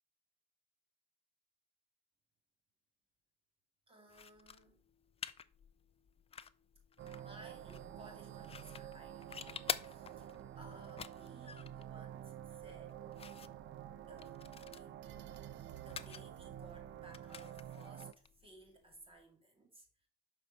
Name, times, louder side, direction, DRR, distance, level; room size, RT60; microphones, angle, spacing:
voice 1, 3.9-4.8 7.0-13.1 14.1-14.4 14.7-15.2 15.8-20.1, right 1 dB, 25° right, 2.3 m, -59 dB
sound 1, 4.1-19.2, left 6 dB, 30° left, 0.4 m, -50 dB
sound 2, 7.0-18.1, right 11 dB, 65° right, 0.5 m, -49 dB
6.1 x 4.7 x 4.4 m
cardioid pair, 90°, 20 cm